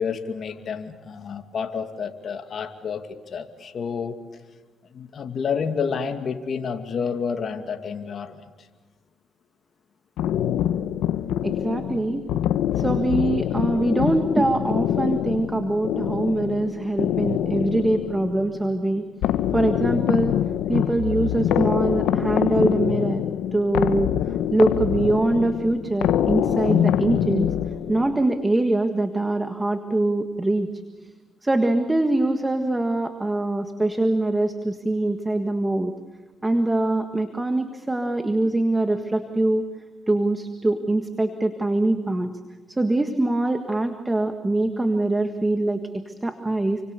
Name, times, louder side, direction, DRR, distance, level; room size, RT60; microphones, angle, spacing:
voice 1, 0.0-4.2 4.8-8.7, left 6 dB, 55° left, 6 dB, 2.3 m, -29 dB
sound 1, 10.2-28.3, left 10 dB, 90° left, 0.9 m, -25 dB
voice 2, 11.4-12.2 12.7-19.0 19.5-20.4 20.7-23.2 23.5-27.5 27.9-30.7 31.4-35.9 36.4-39.6 40.1-42.3 42.7-46.8, right 2 dB, 15° right, 7 dB, 1.6 m, -23 dB
29.5 x 25.0 x 6.9 m, 1.2 s
cardioid pair, 90°, 0 cm